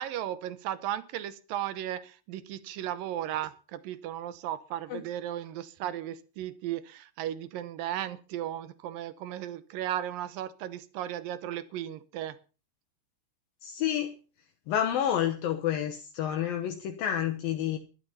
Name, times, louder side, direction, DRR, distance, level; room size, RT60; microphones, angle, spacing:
voice 1, 0.0-12.4, right 12 dB, 75° right, 15 dB, 2.4 m, -35 dB
voice 2, 13.6-14.1 14.7-17.8, left 10 dB, 70° left, 5 dB, 2.7 m, -29 dB
13.0 x 12.0 x 5.6 m, 0.35 s
omnidirectional pair, 4.6 m